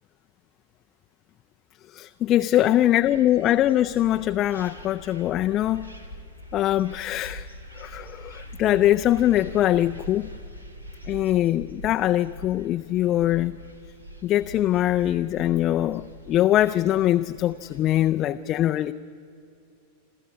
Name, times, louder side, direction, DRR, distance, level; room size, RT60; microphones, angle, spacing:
voice 1, 1.9-5.9 6.5-7.5 7.8-10.3 11.1-13.6 14.2-18.9, left 13 dB, 35° left, 7 dB, 0.5 m, -22 dB
sound 1, 2.5-18.1, equal, 85° right, 1.7 m, -43 dB
27.5 x 14.0 x 9.7 m, 2.6 s
figure-of-eight pair, 90°, 0 cm